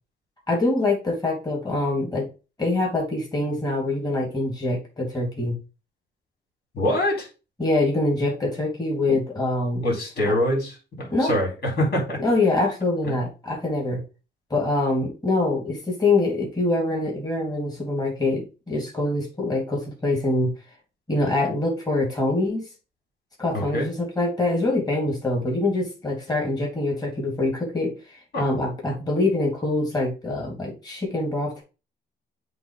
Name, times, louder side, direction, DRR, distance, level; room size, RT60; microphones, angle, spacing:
voice 1, 0.5-2.3 2.6-5.6 7.6-9.8 11.1-11.4 12.2-14.0 14.5-20.5 21.1-22.6 23.4-28.0 28.4-31.6, left 2 dB, 20° left, -2 dB, 3.6 m, -24 dB
voice 2, 6.7-7.3 9.1-9.2 9.8-12.2 13.0-13.2 23.5-23.9 28.3-28.5, left 1 dB, 55° left, 0 dB, 4.2 m, -25 dB
7.8 x 3.3 x 5.1 m, 0.31 s
cardioid pair, 90°, 20 cm